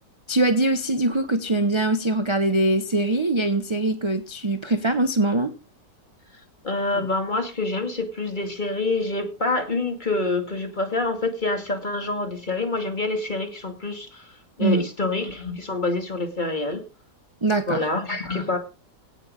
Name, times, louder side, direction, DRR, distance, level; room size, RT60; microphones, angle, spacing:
voice 1, 0.3-5.5 14.6-14.8 17.4-17.8, right 2 dB, 20° right, 0.8 m, -22 dB
voice 2, 6.6-16.8 17.7-18.6, left 2 dB, 25° left, 2.4 m, -26 dB
17.0 x 6.8 x 5.2 m
omnidirectional pair, 1.9 m